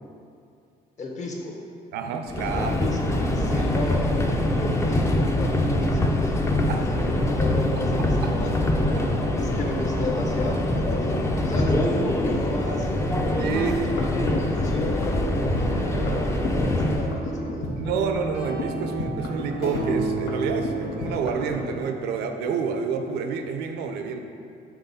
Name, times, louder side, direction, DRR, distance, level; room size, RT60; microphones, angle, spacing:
voice 1, 1.0-1.5 2.5-3.0 3.3-4.0 4.5-6.3 6.7-9.0 9.3-13.1 13.5-17.7, left 2 dB, 45° left, 0 dB, 1.1 m, -34 dB
voice 2, 1.9-2.8 3.5-3.7 6.7-6.9 9.0-9.1 13.4-13.9 17.8-24.2, right 6 dB, 75° right, 6 dB, 0.6 m, -28 dB
Subway metro underground, 2.3-17.1, left 1 dB, 15° left, 0.5 m, -24 dB
sound 1, 13.5-21.8, equal, 90° left, 0.9 m, -31 dB
5.8 x 3.6 x 5.6 m, 2.5 s
cardioid pair, 110°, 17 cm